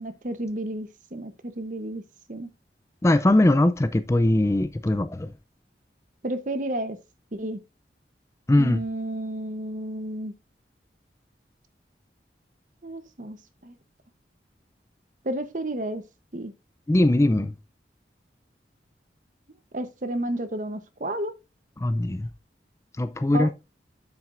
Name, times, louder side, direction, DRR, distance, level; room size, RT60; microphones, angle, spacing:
voice 1, 0.0-2.0 2.3-2.5 6.2-7.0 7.3-7.6 8.6-10.3 12.8-13.4 13.6-13.8 15.2-16.0 16.3-16.5 19.7-21.3 23.3-23.5, right 1 dB, 45° right, 0.9 m, -31 dB
voice 2, 3.0-5.3 8.5-8.8 16.9-17.5 21.8-22.3 23.0-23.5, left 1 dB, 15° left, 0.4 m, -21 dB
8.6 x 7.4 x 2.5 m
head